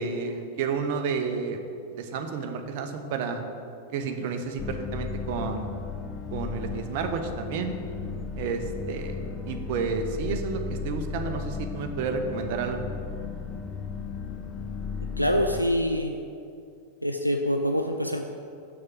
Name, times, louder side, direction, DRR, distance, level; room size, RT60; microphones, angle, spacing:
voice 1, 0.0-1.6 2.0-3.4 3.9-5.7 6.3-7.7 8.4-9.2 9.5-12.8, right 5 dB, 50° right, 6 dB, 0.8 m, -31 dB
sound 1, 4.6-15.6, left 5 dB, 20° left, 0.6 m, -35 dB
voice 2, 15.2-16.1 17.0-18.2, equal, 90° right, 4 dB, 0.4 m, -25 dB
6.5 x 6.0 x 6.9 m, 2.4 s
figure-of-eight pair, 90°, 0 cm